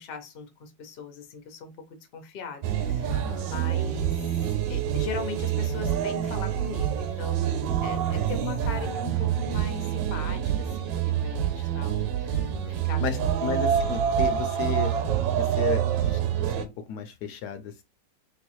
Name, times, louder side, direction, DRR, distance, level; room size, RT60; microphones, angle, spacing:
voice 1, 0.0-1.7 2.1-4.2 4.7-12.4 12.7-13.7, left 6 dB, 50° left, 0.6 m, -40 dB
sound 1, 2.6-16.6, right 9 dB, 85° right, 1.3 m, -27 dB
voice 2, 3.1-3.5 12.4-12.7 13.0-14.9 15.3-16.2 16.6-17.8, left 7 dB, 75° left, 1.0 m, -34 dB
3.3 x 3.1 x 3.0 m
omnidirectional pair, 1.9 m